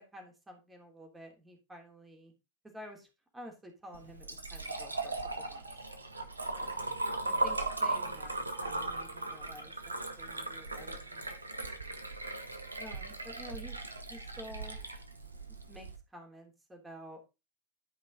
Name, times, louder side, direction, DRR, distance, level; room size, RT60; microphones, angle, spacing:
voice 1, 0.0-2.3 2.7-5.7 6.5-11.3 12.8-13.8 14.1-14.8 15.7-17.2, equal, 10° right, 2 dB, 3.1 m, -51 dB
Liquid, 3.9-16.0, right 2 dB, 80° right, 1.3 m, -37 dB
12.5 x 5.3 x 3.9 m, 0.27 s
figure-of-eight pair, 90°, 0 cm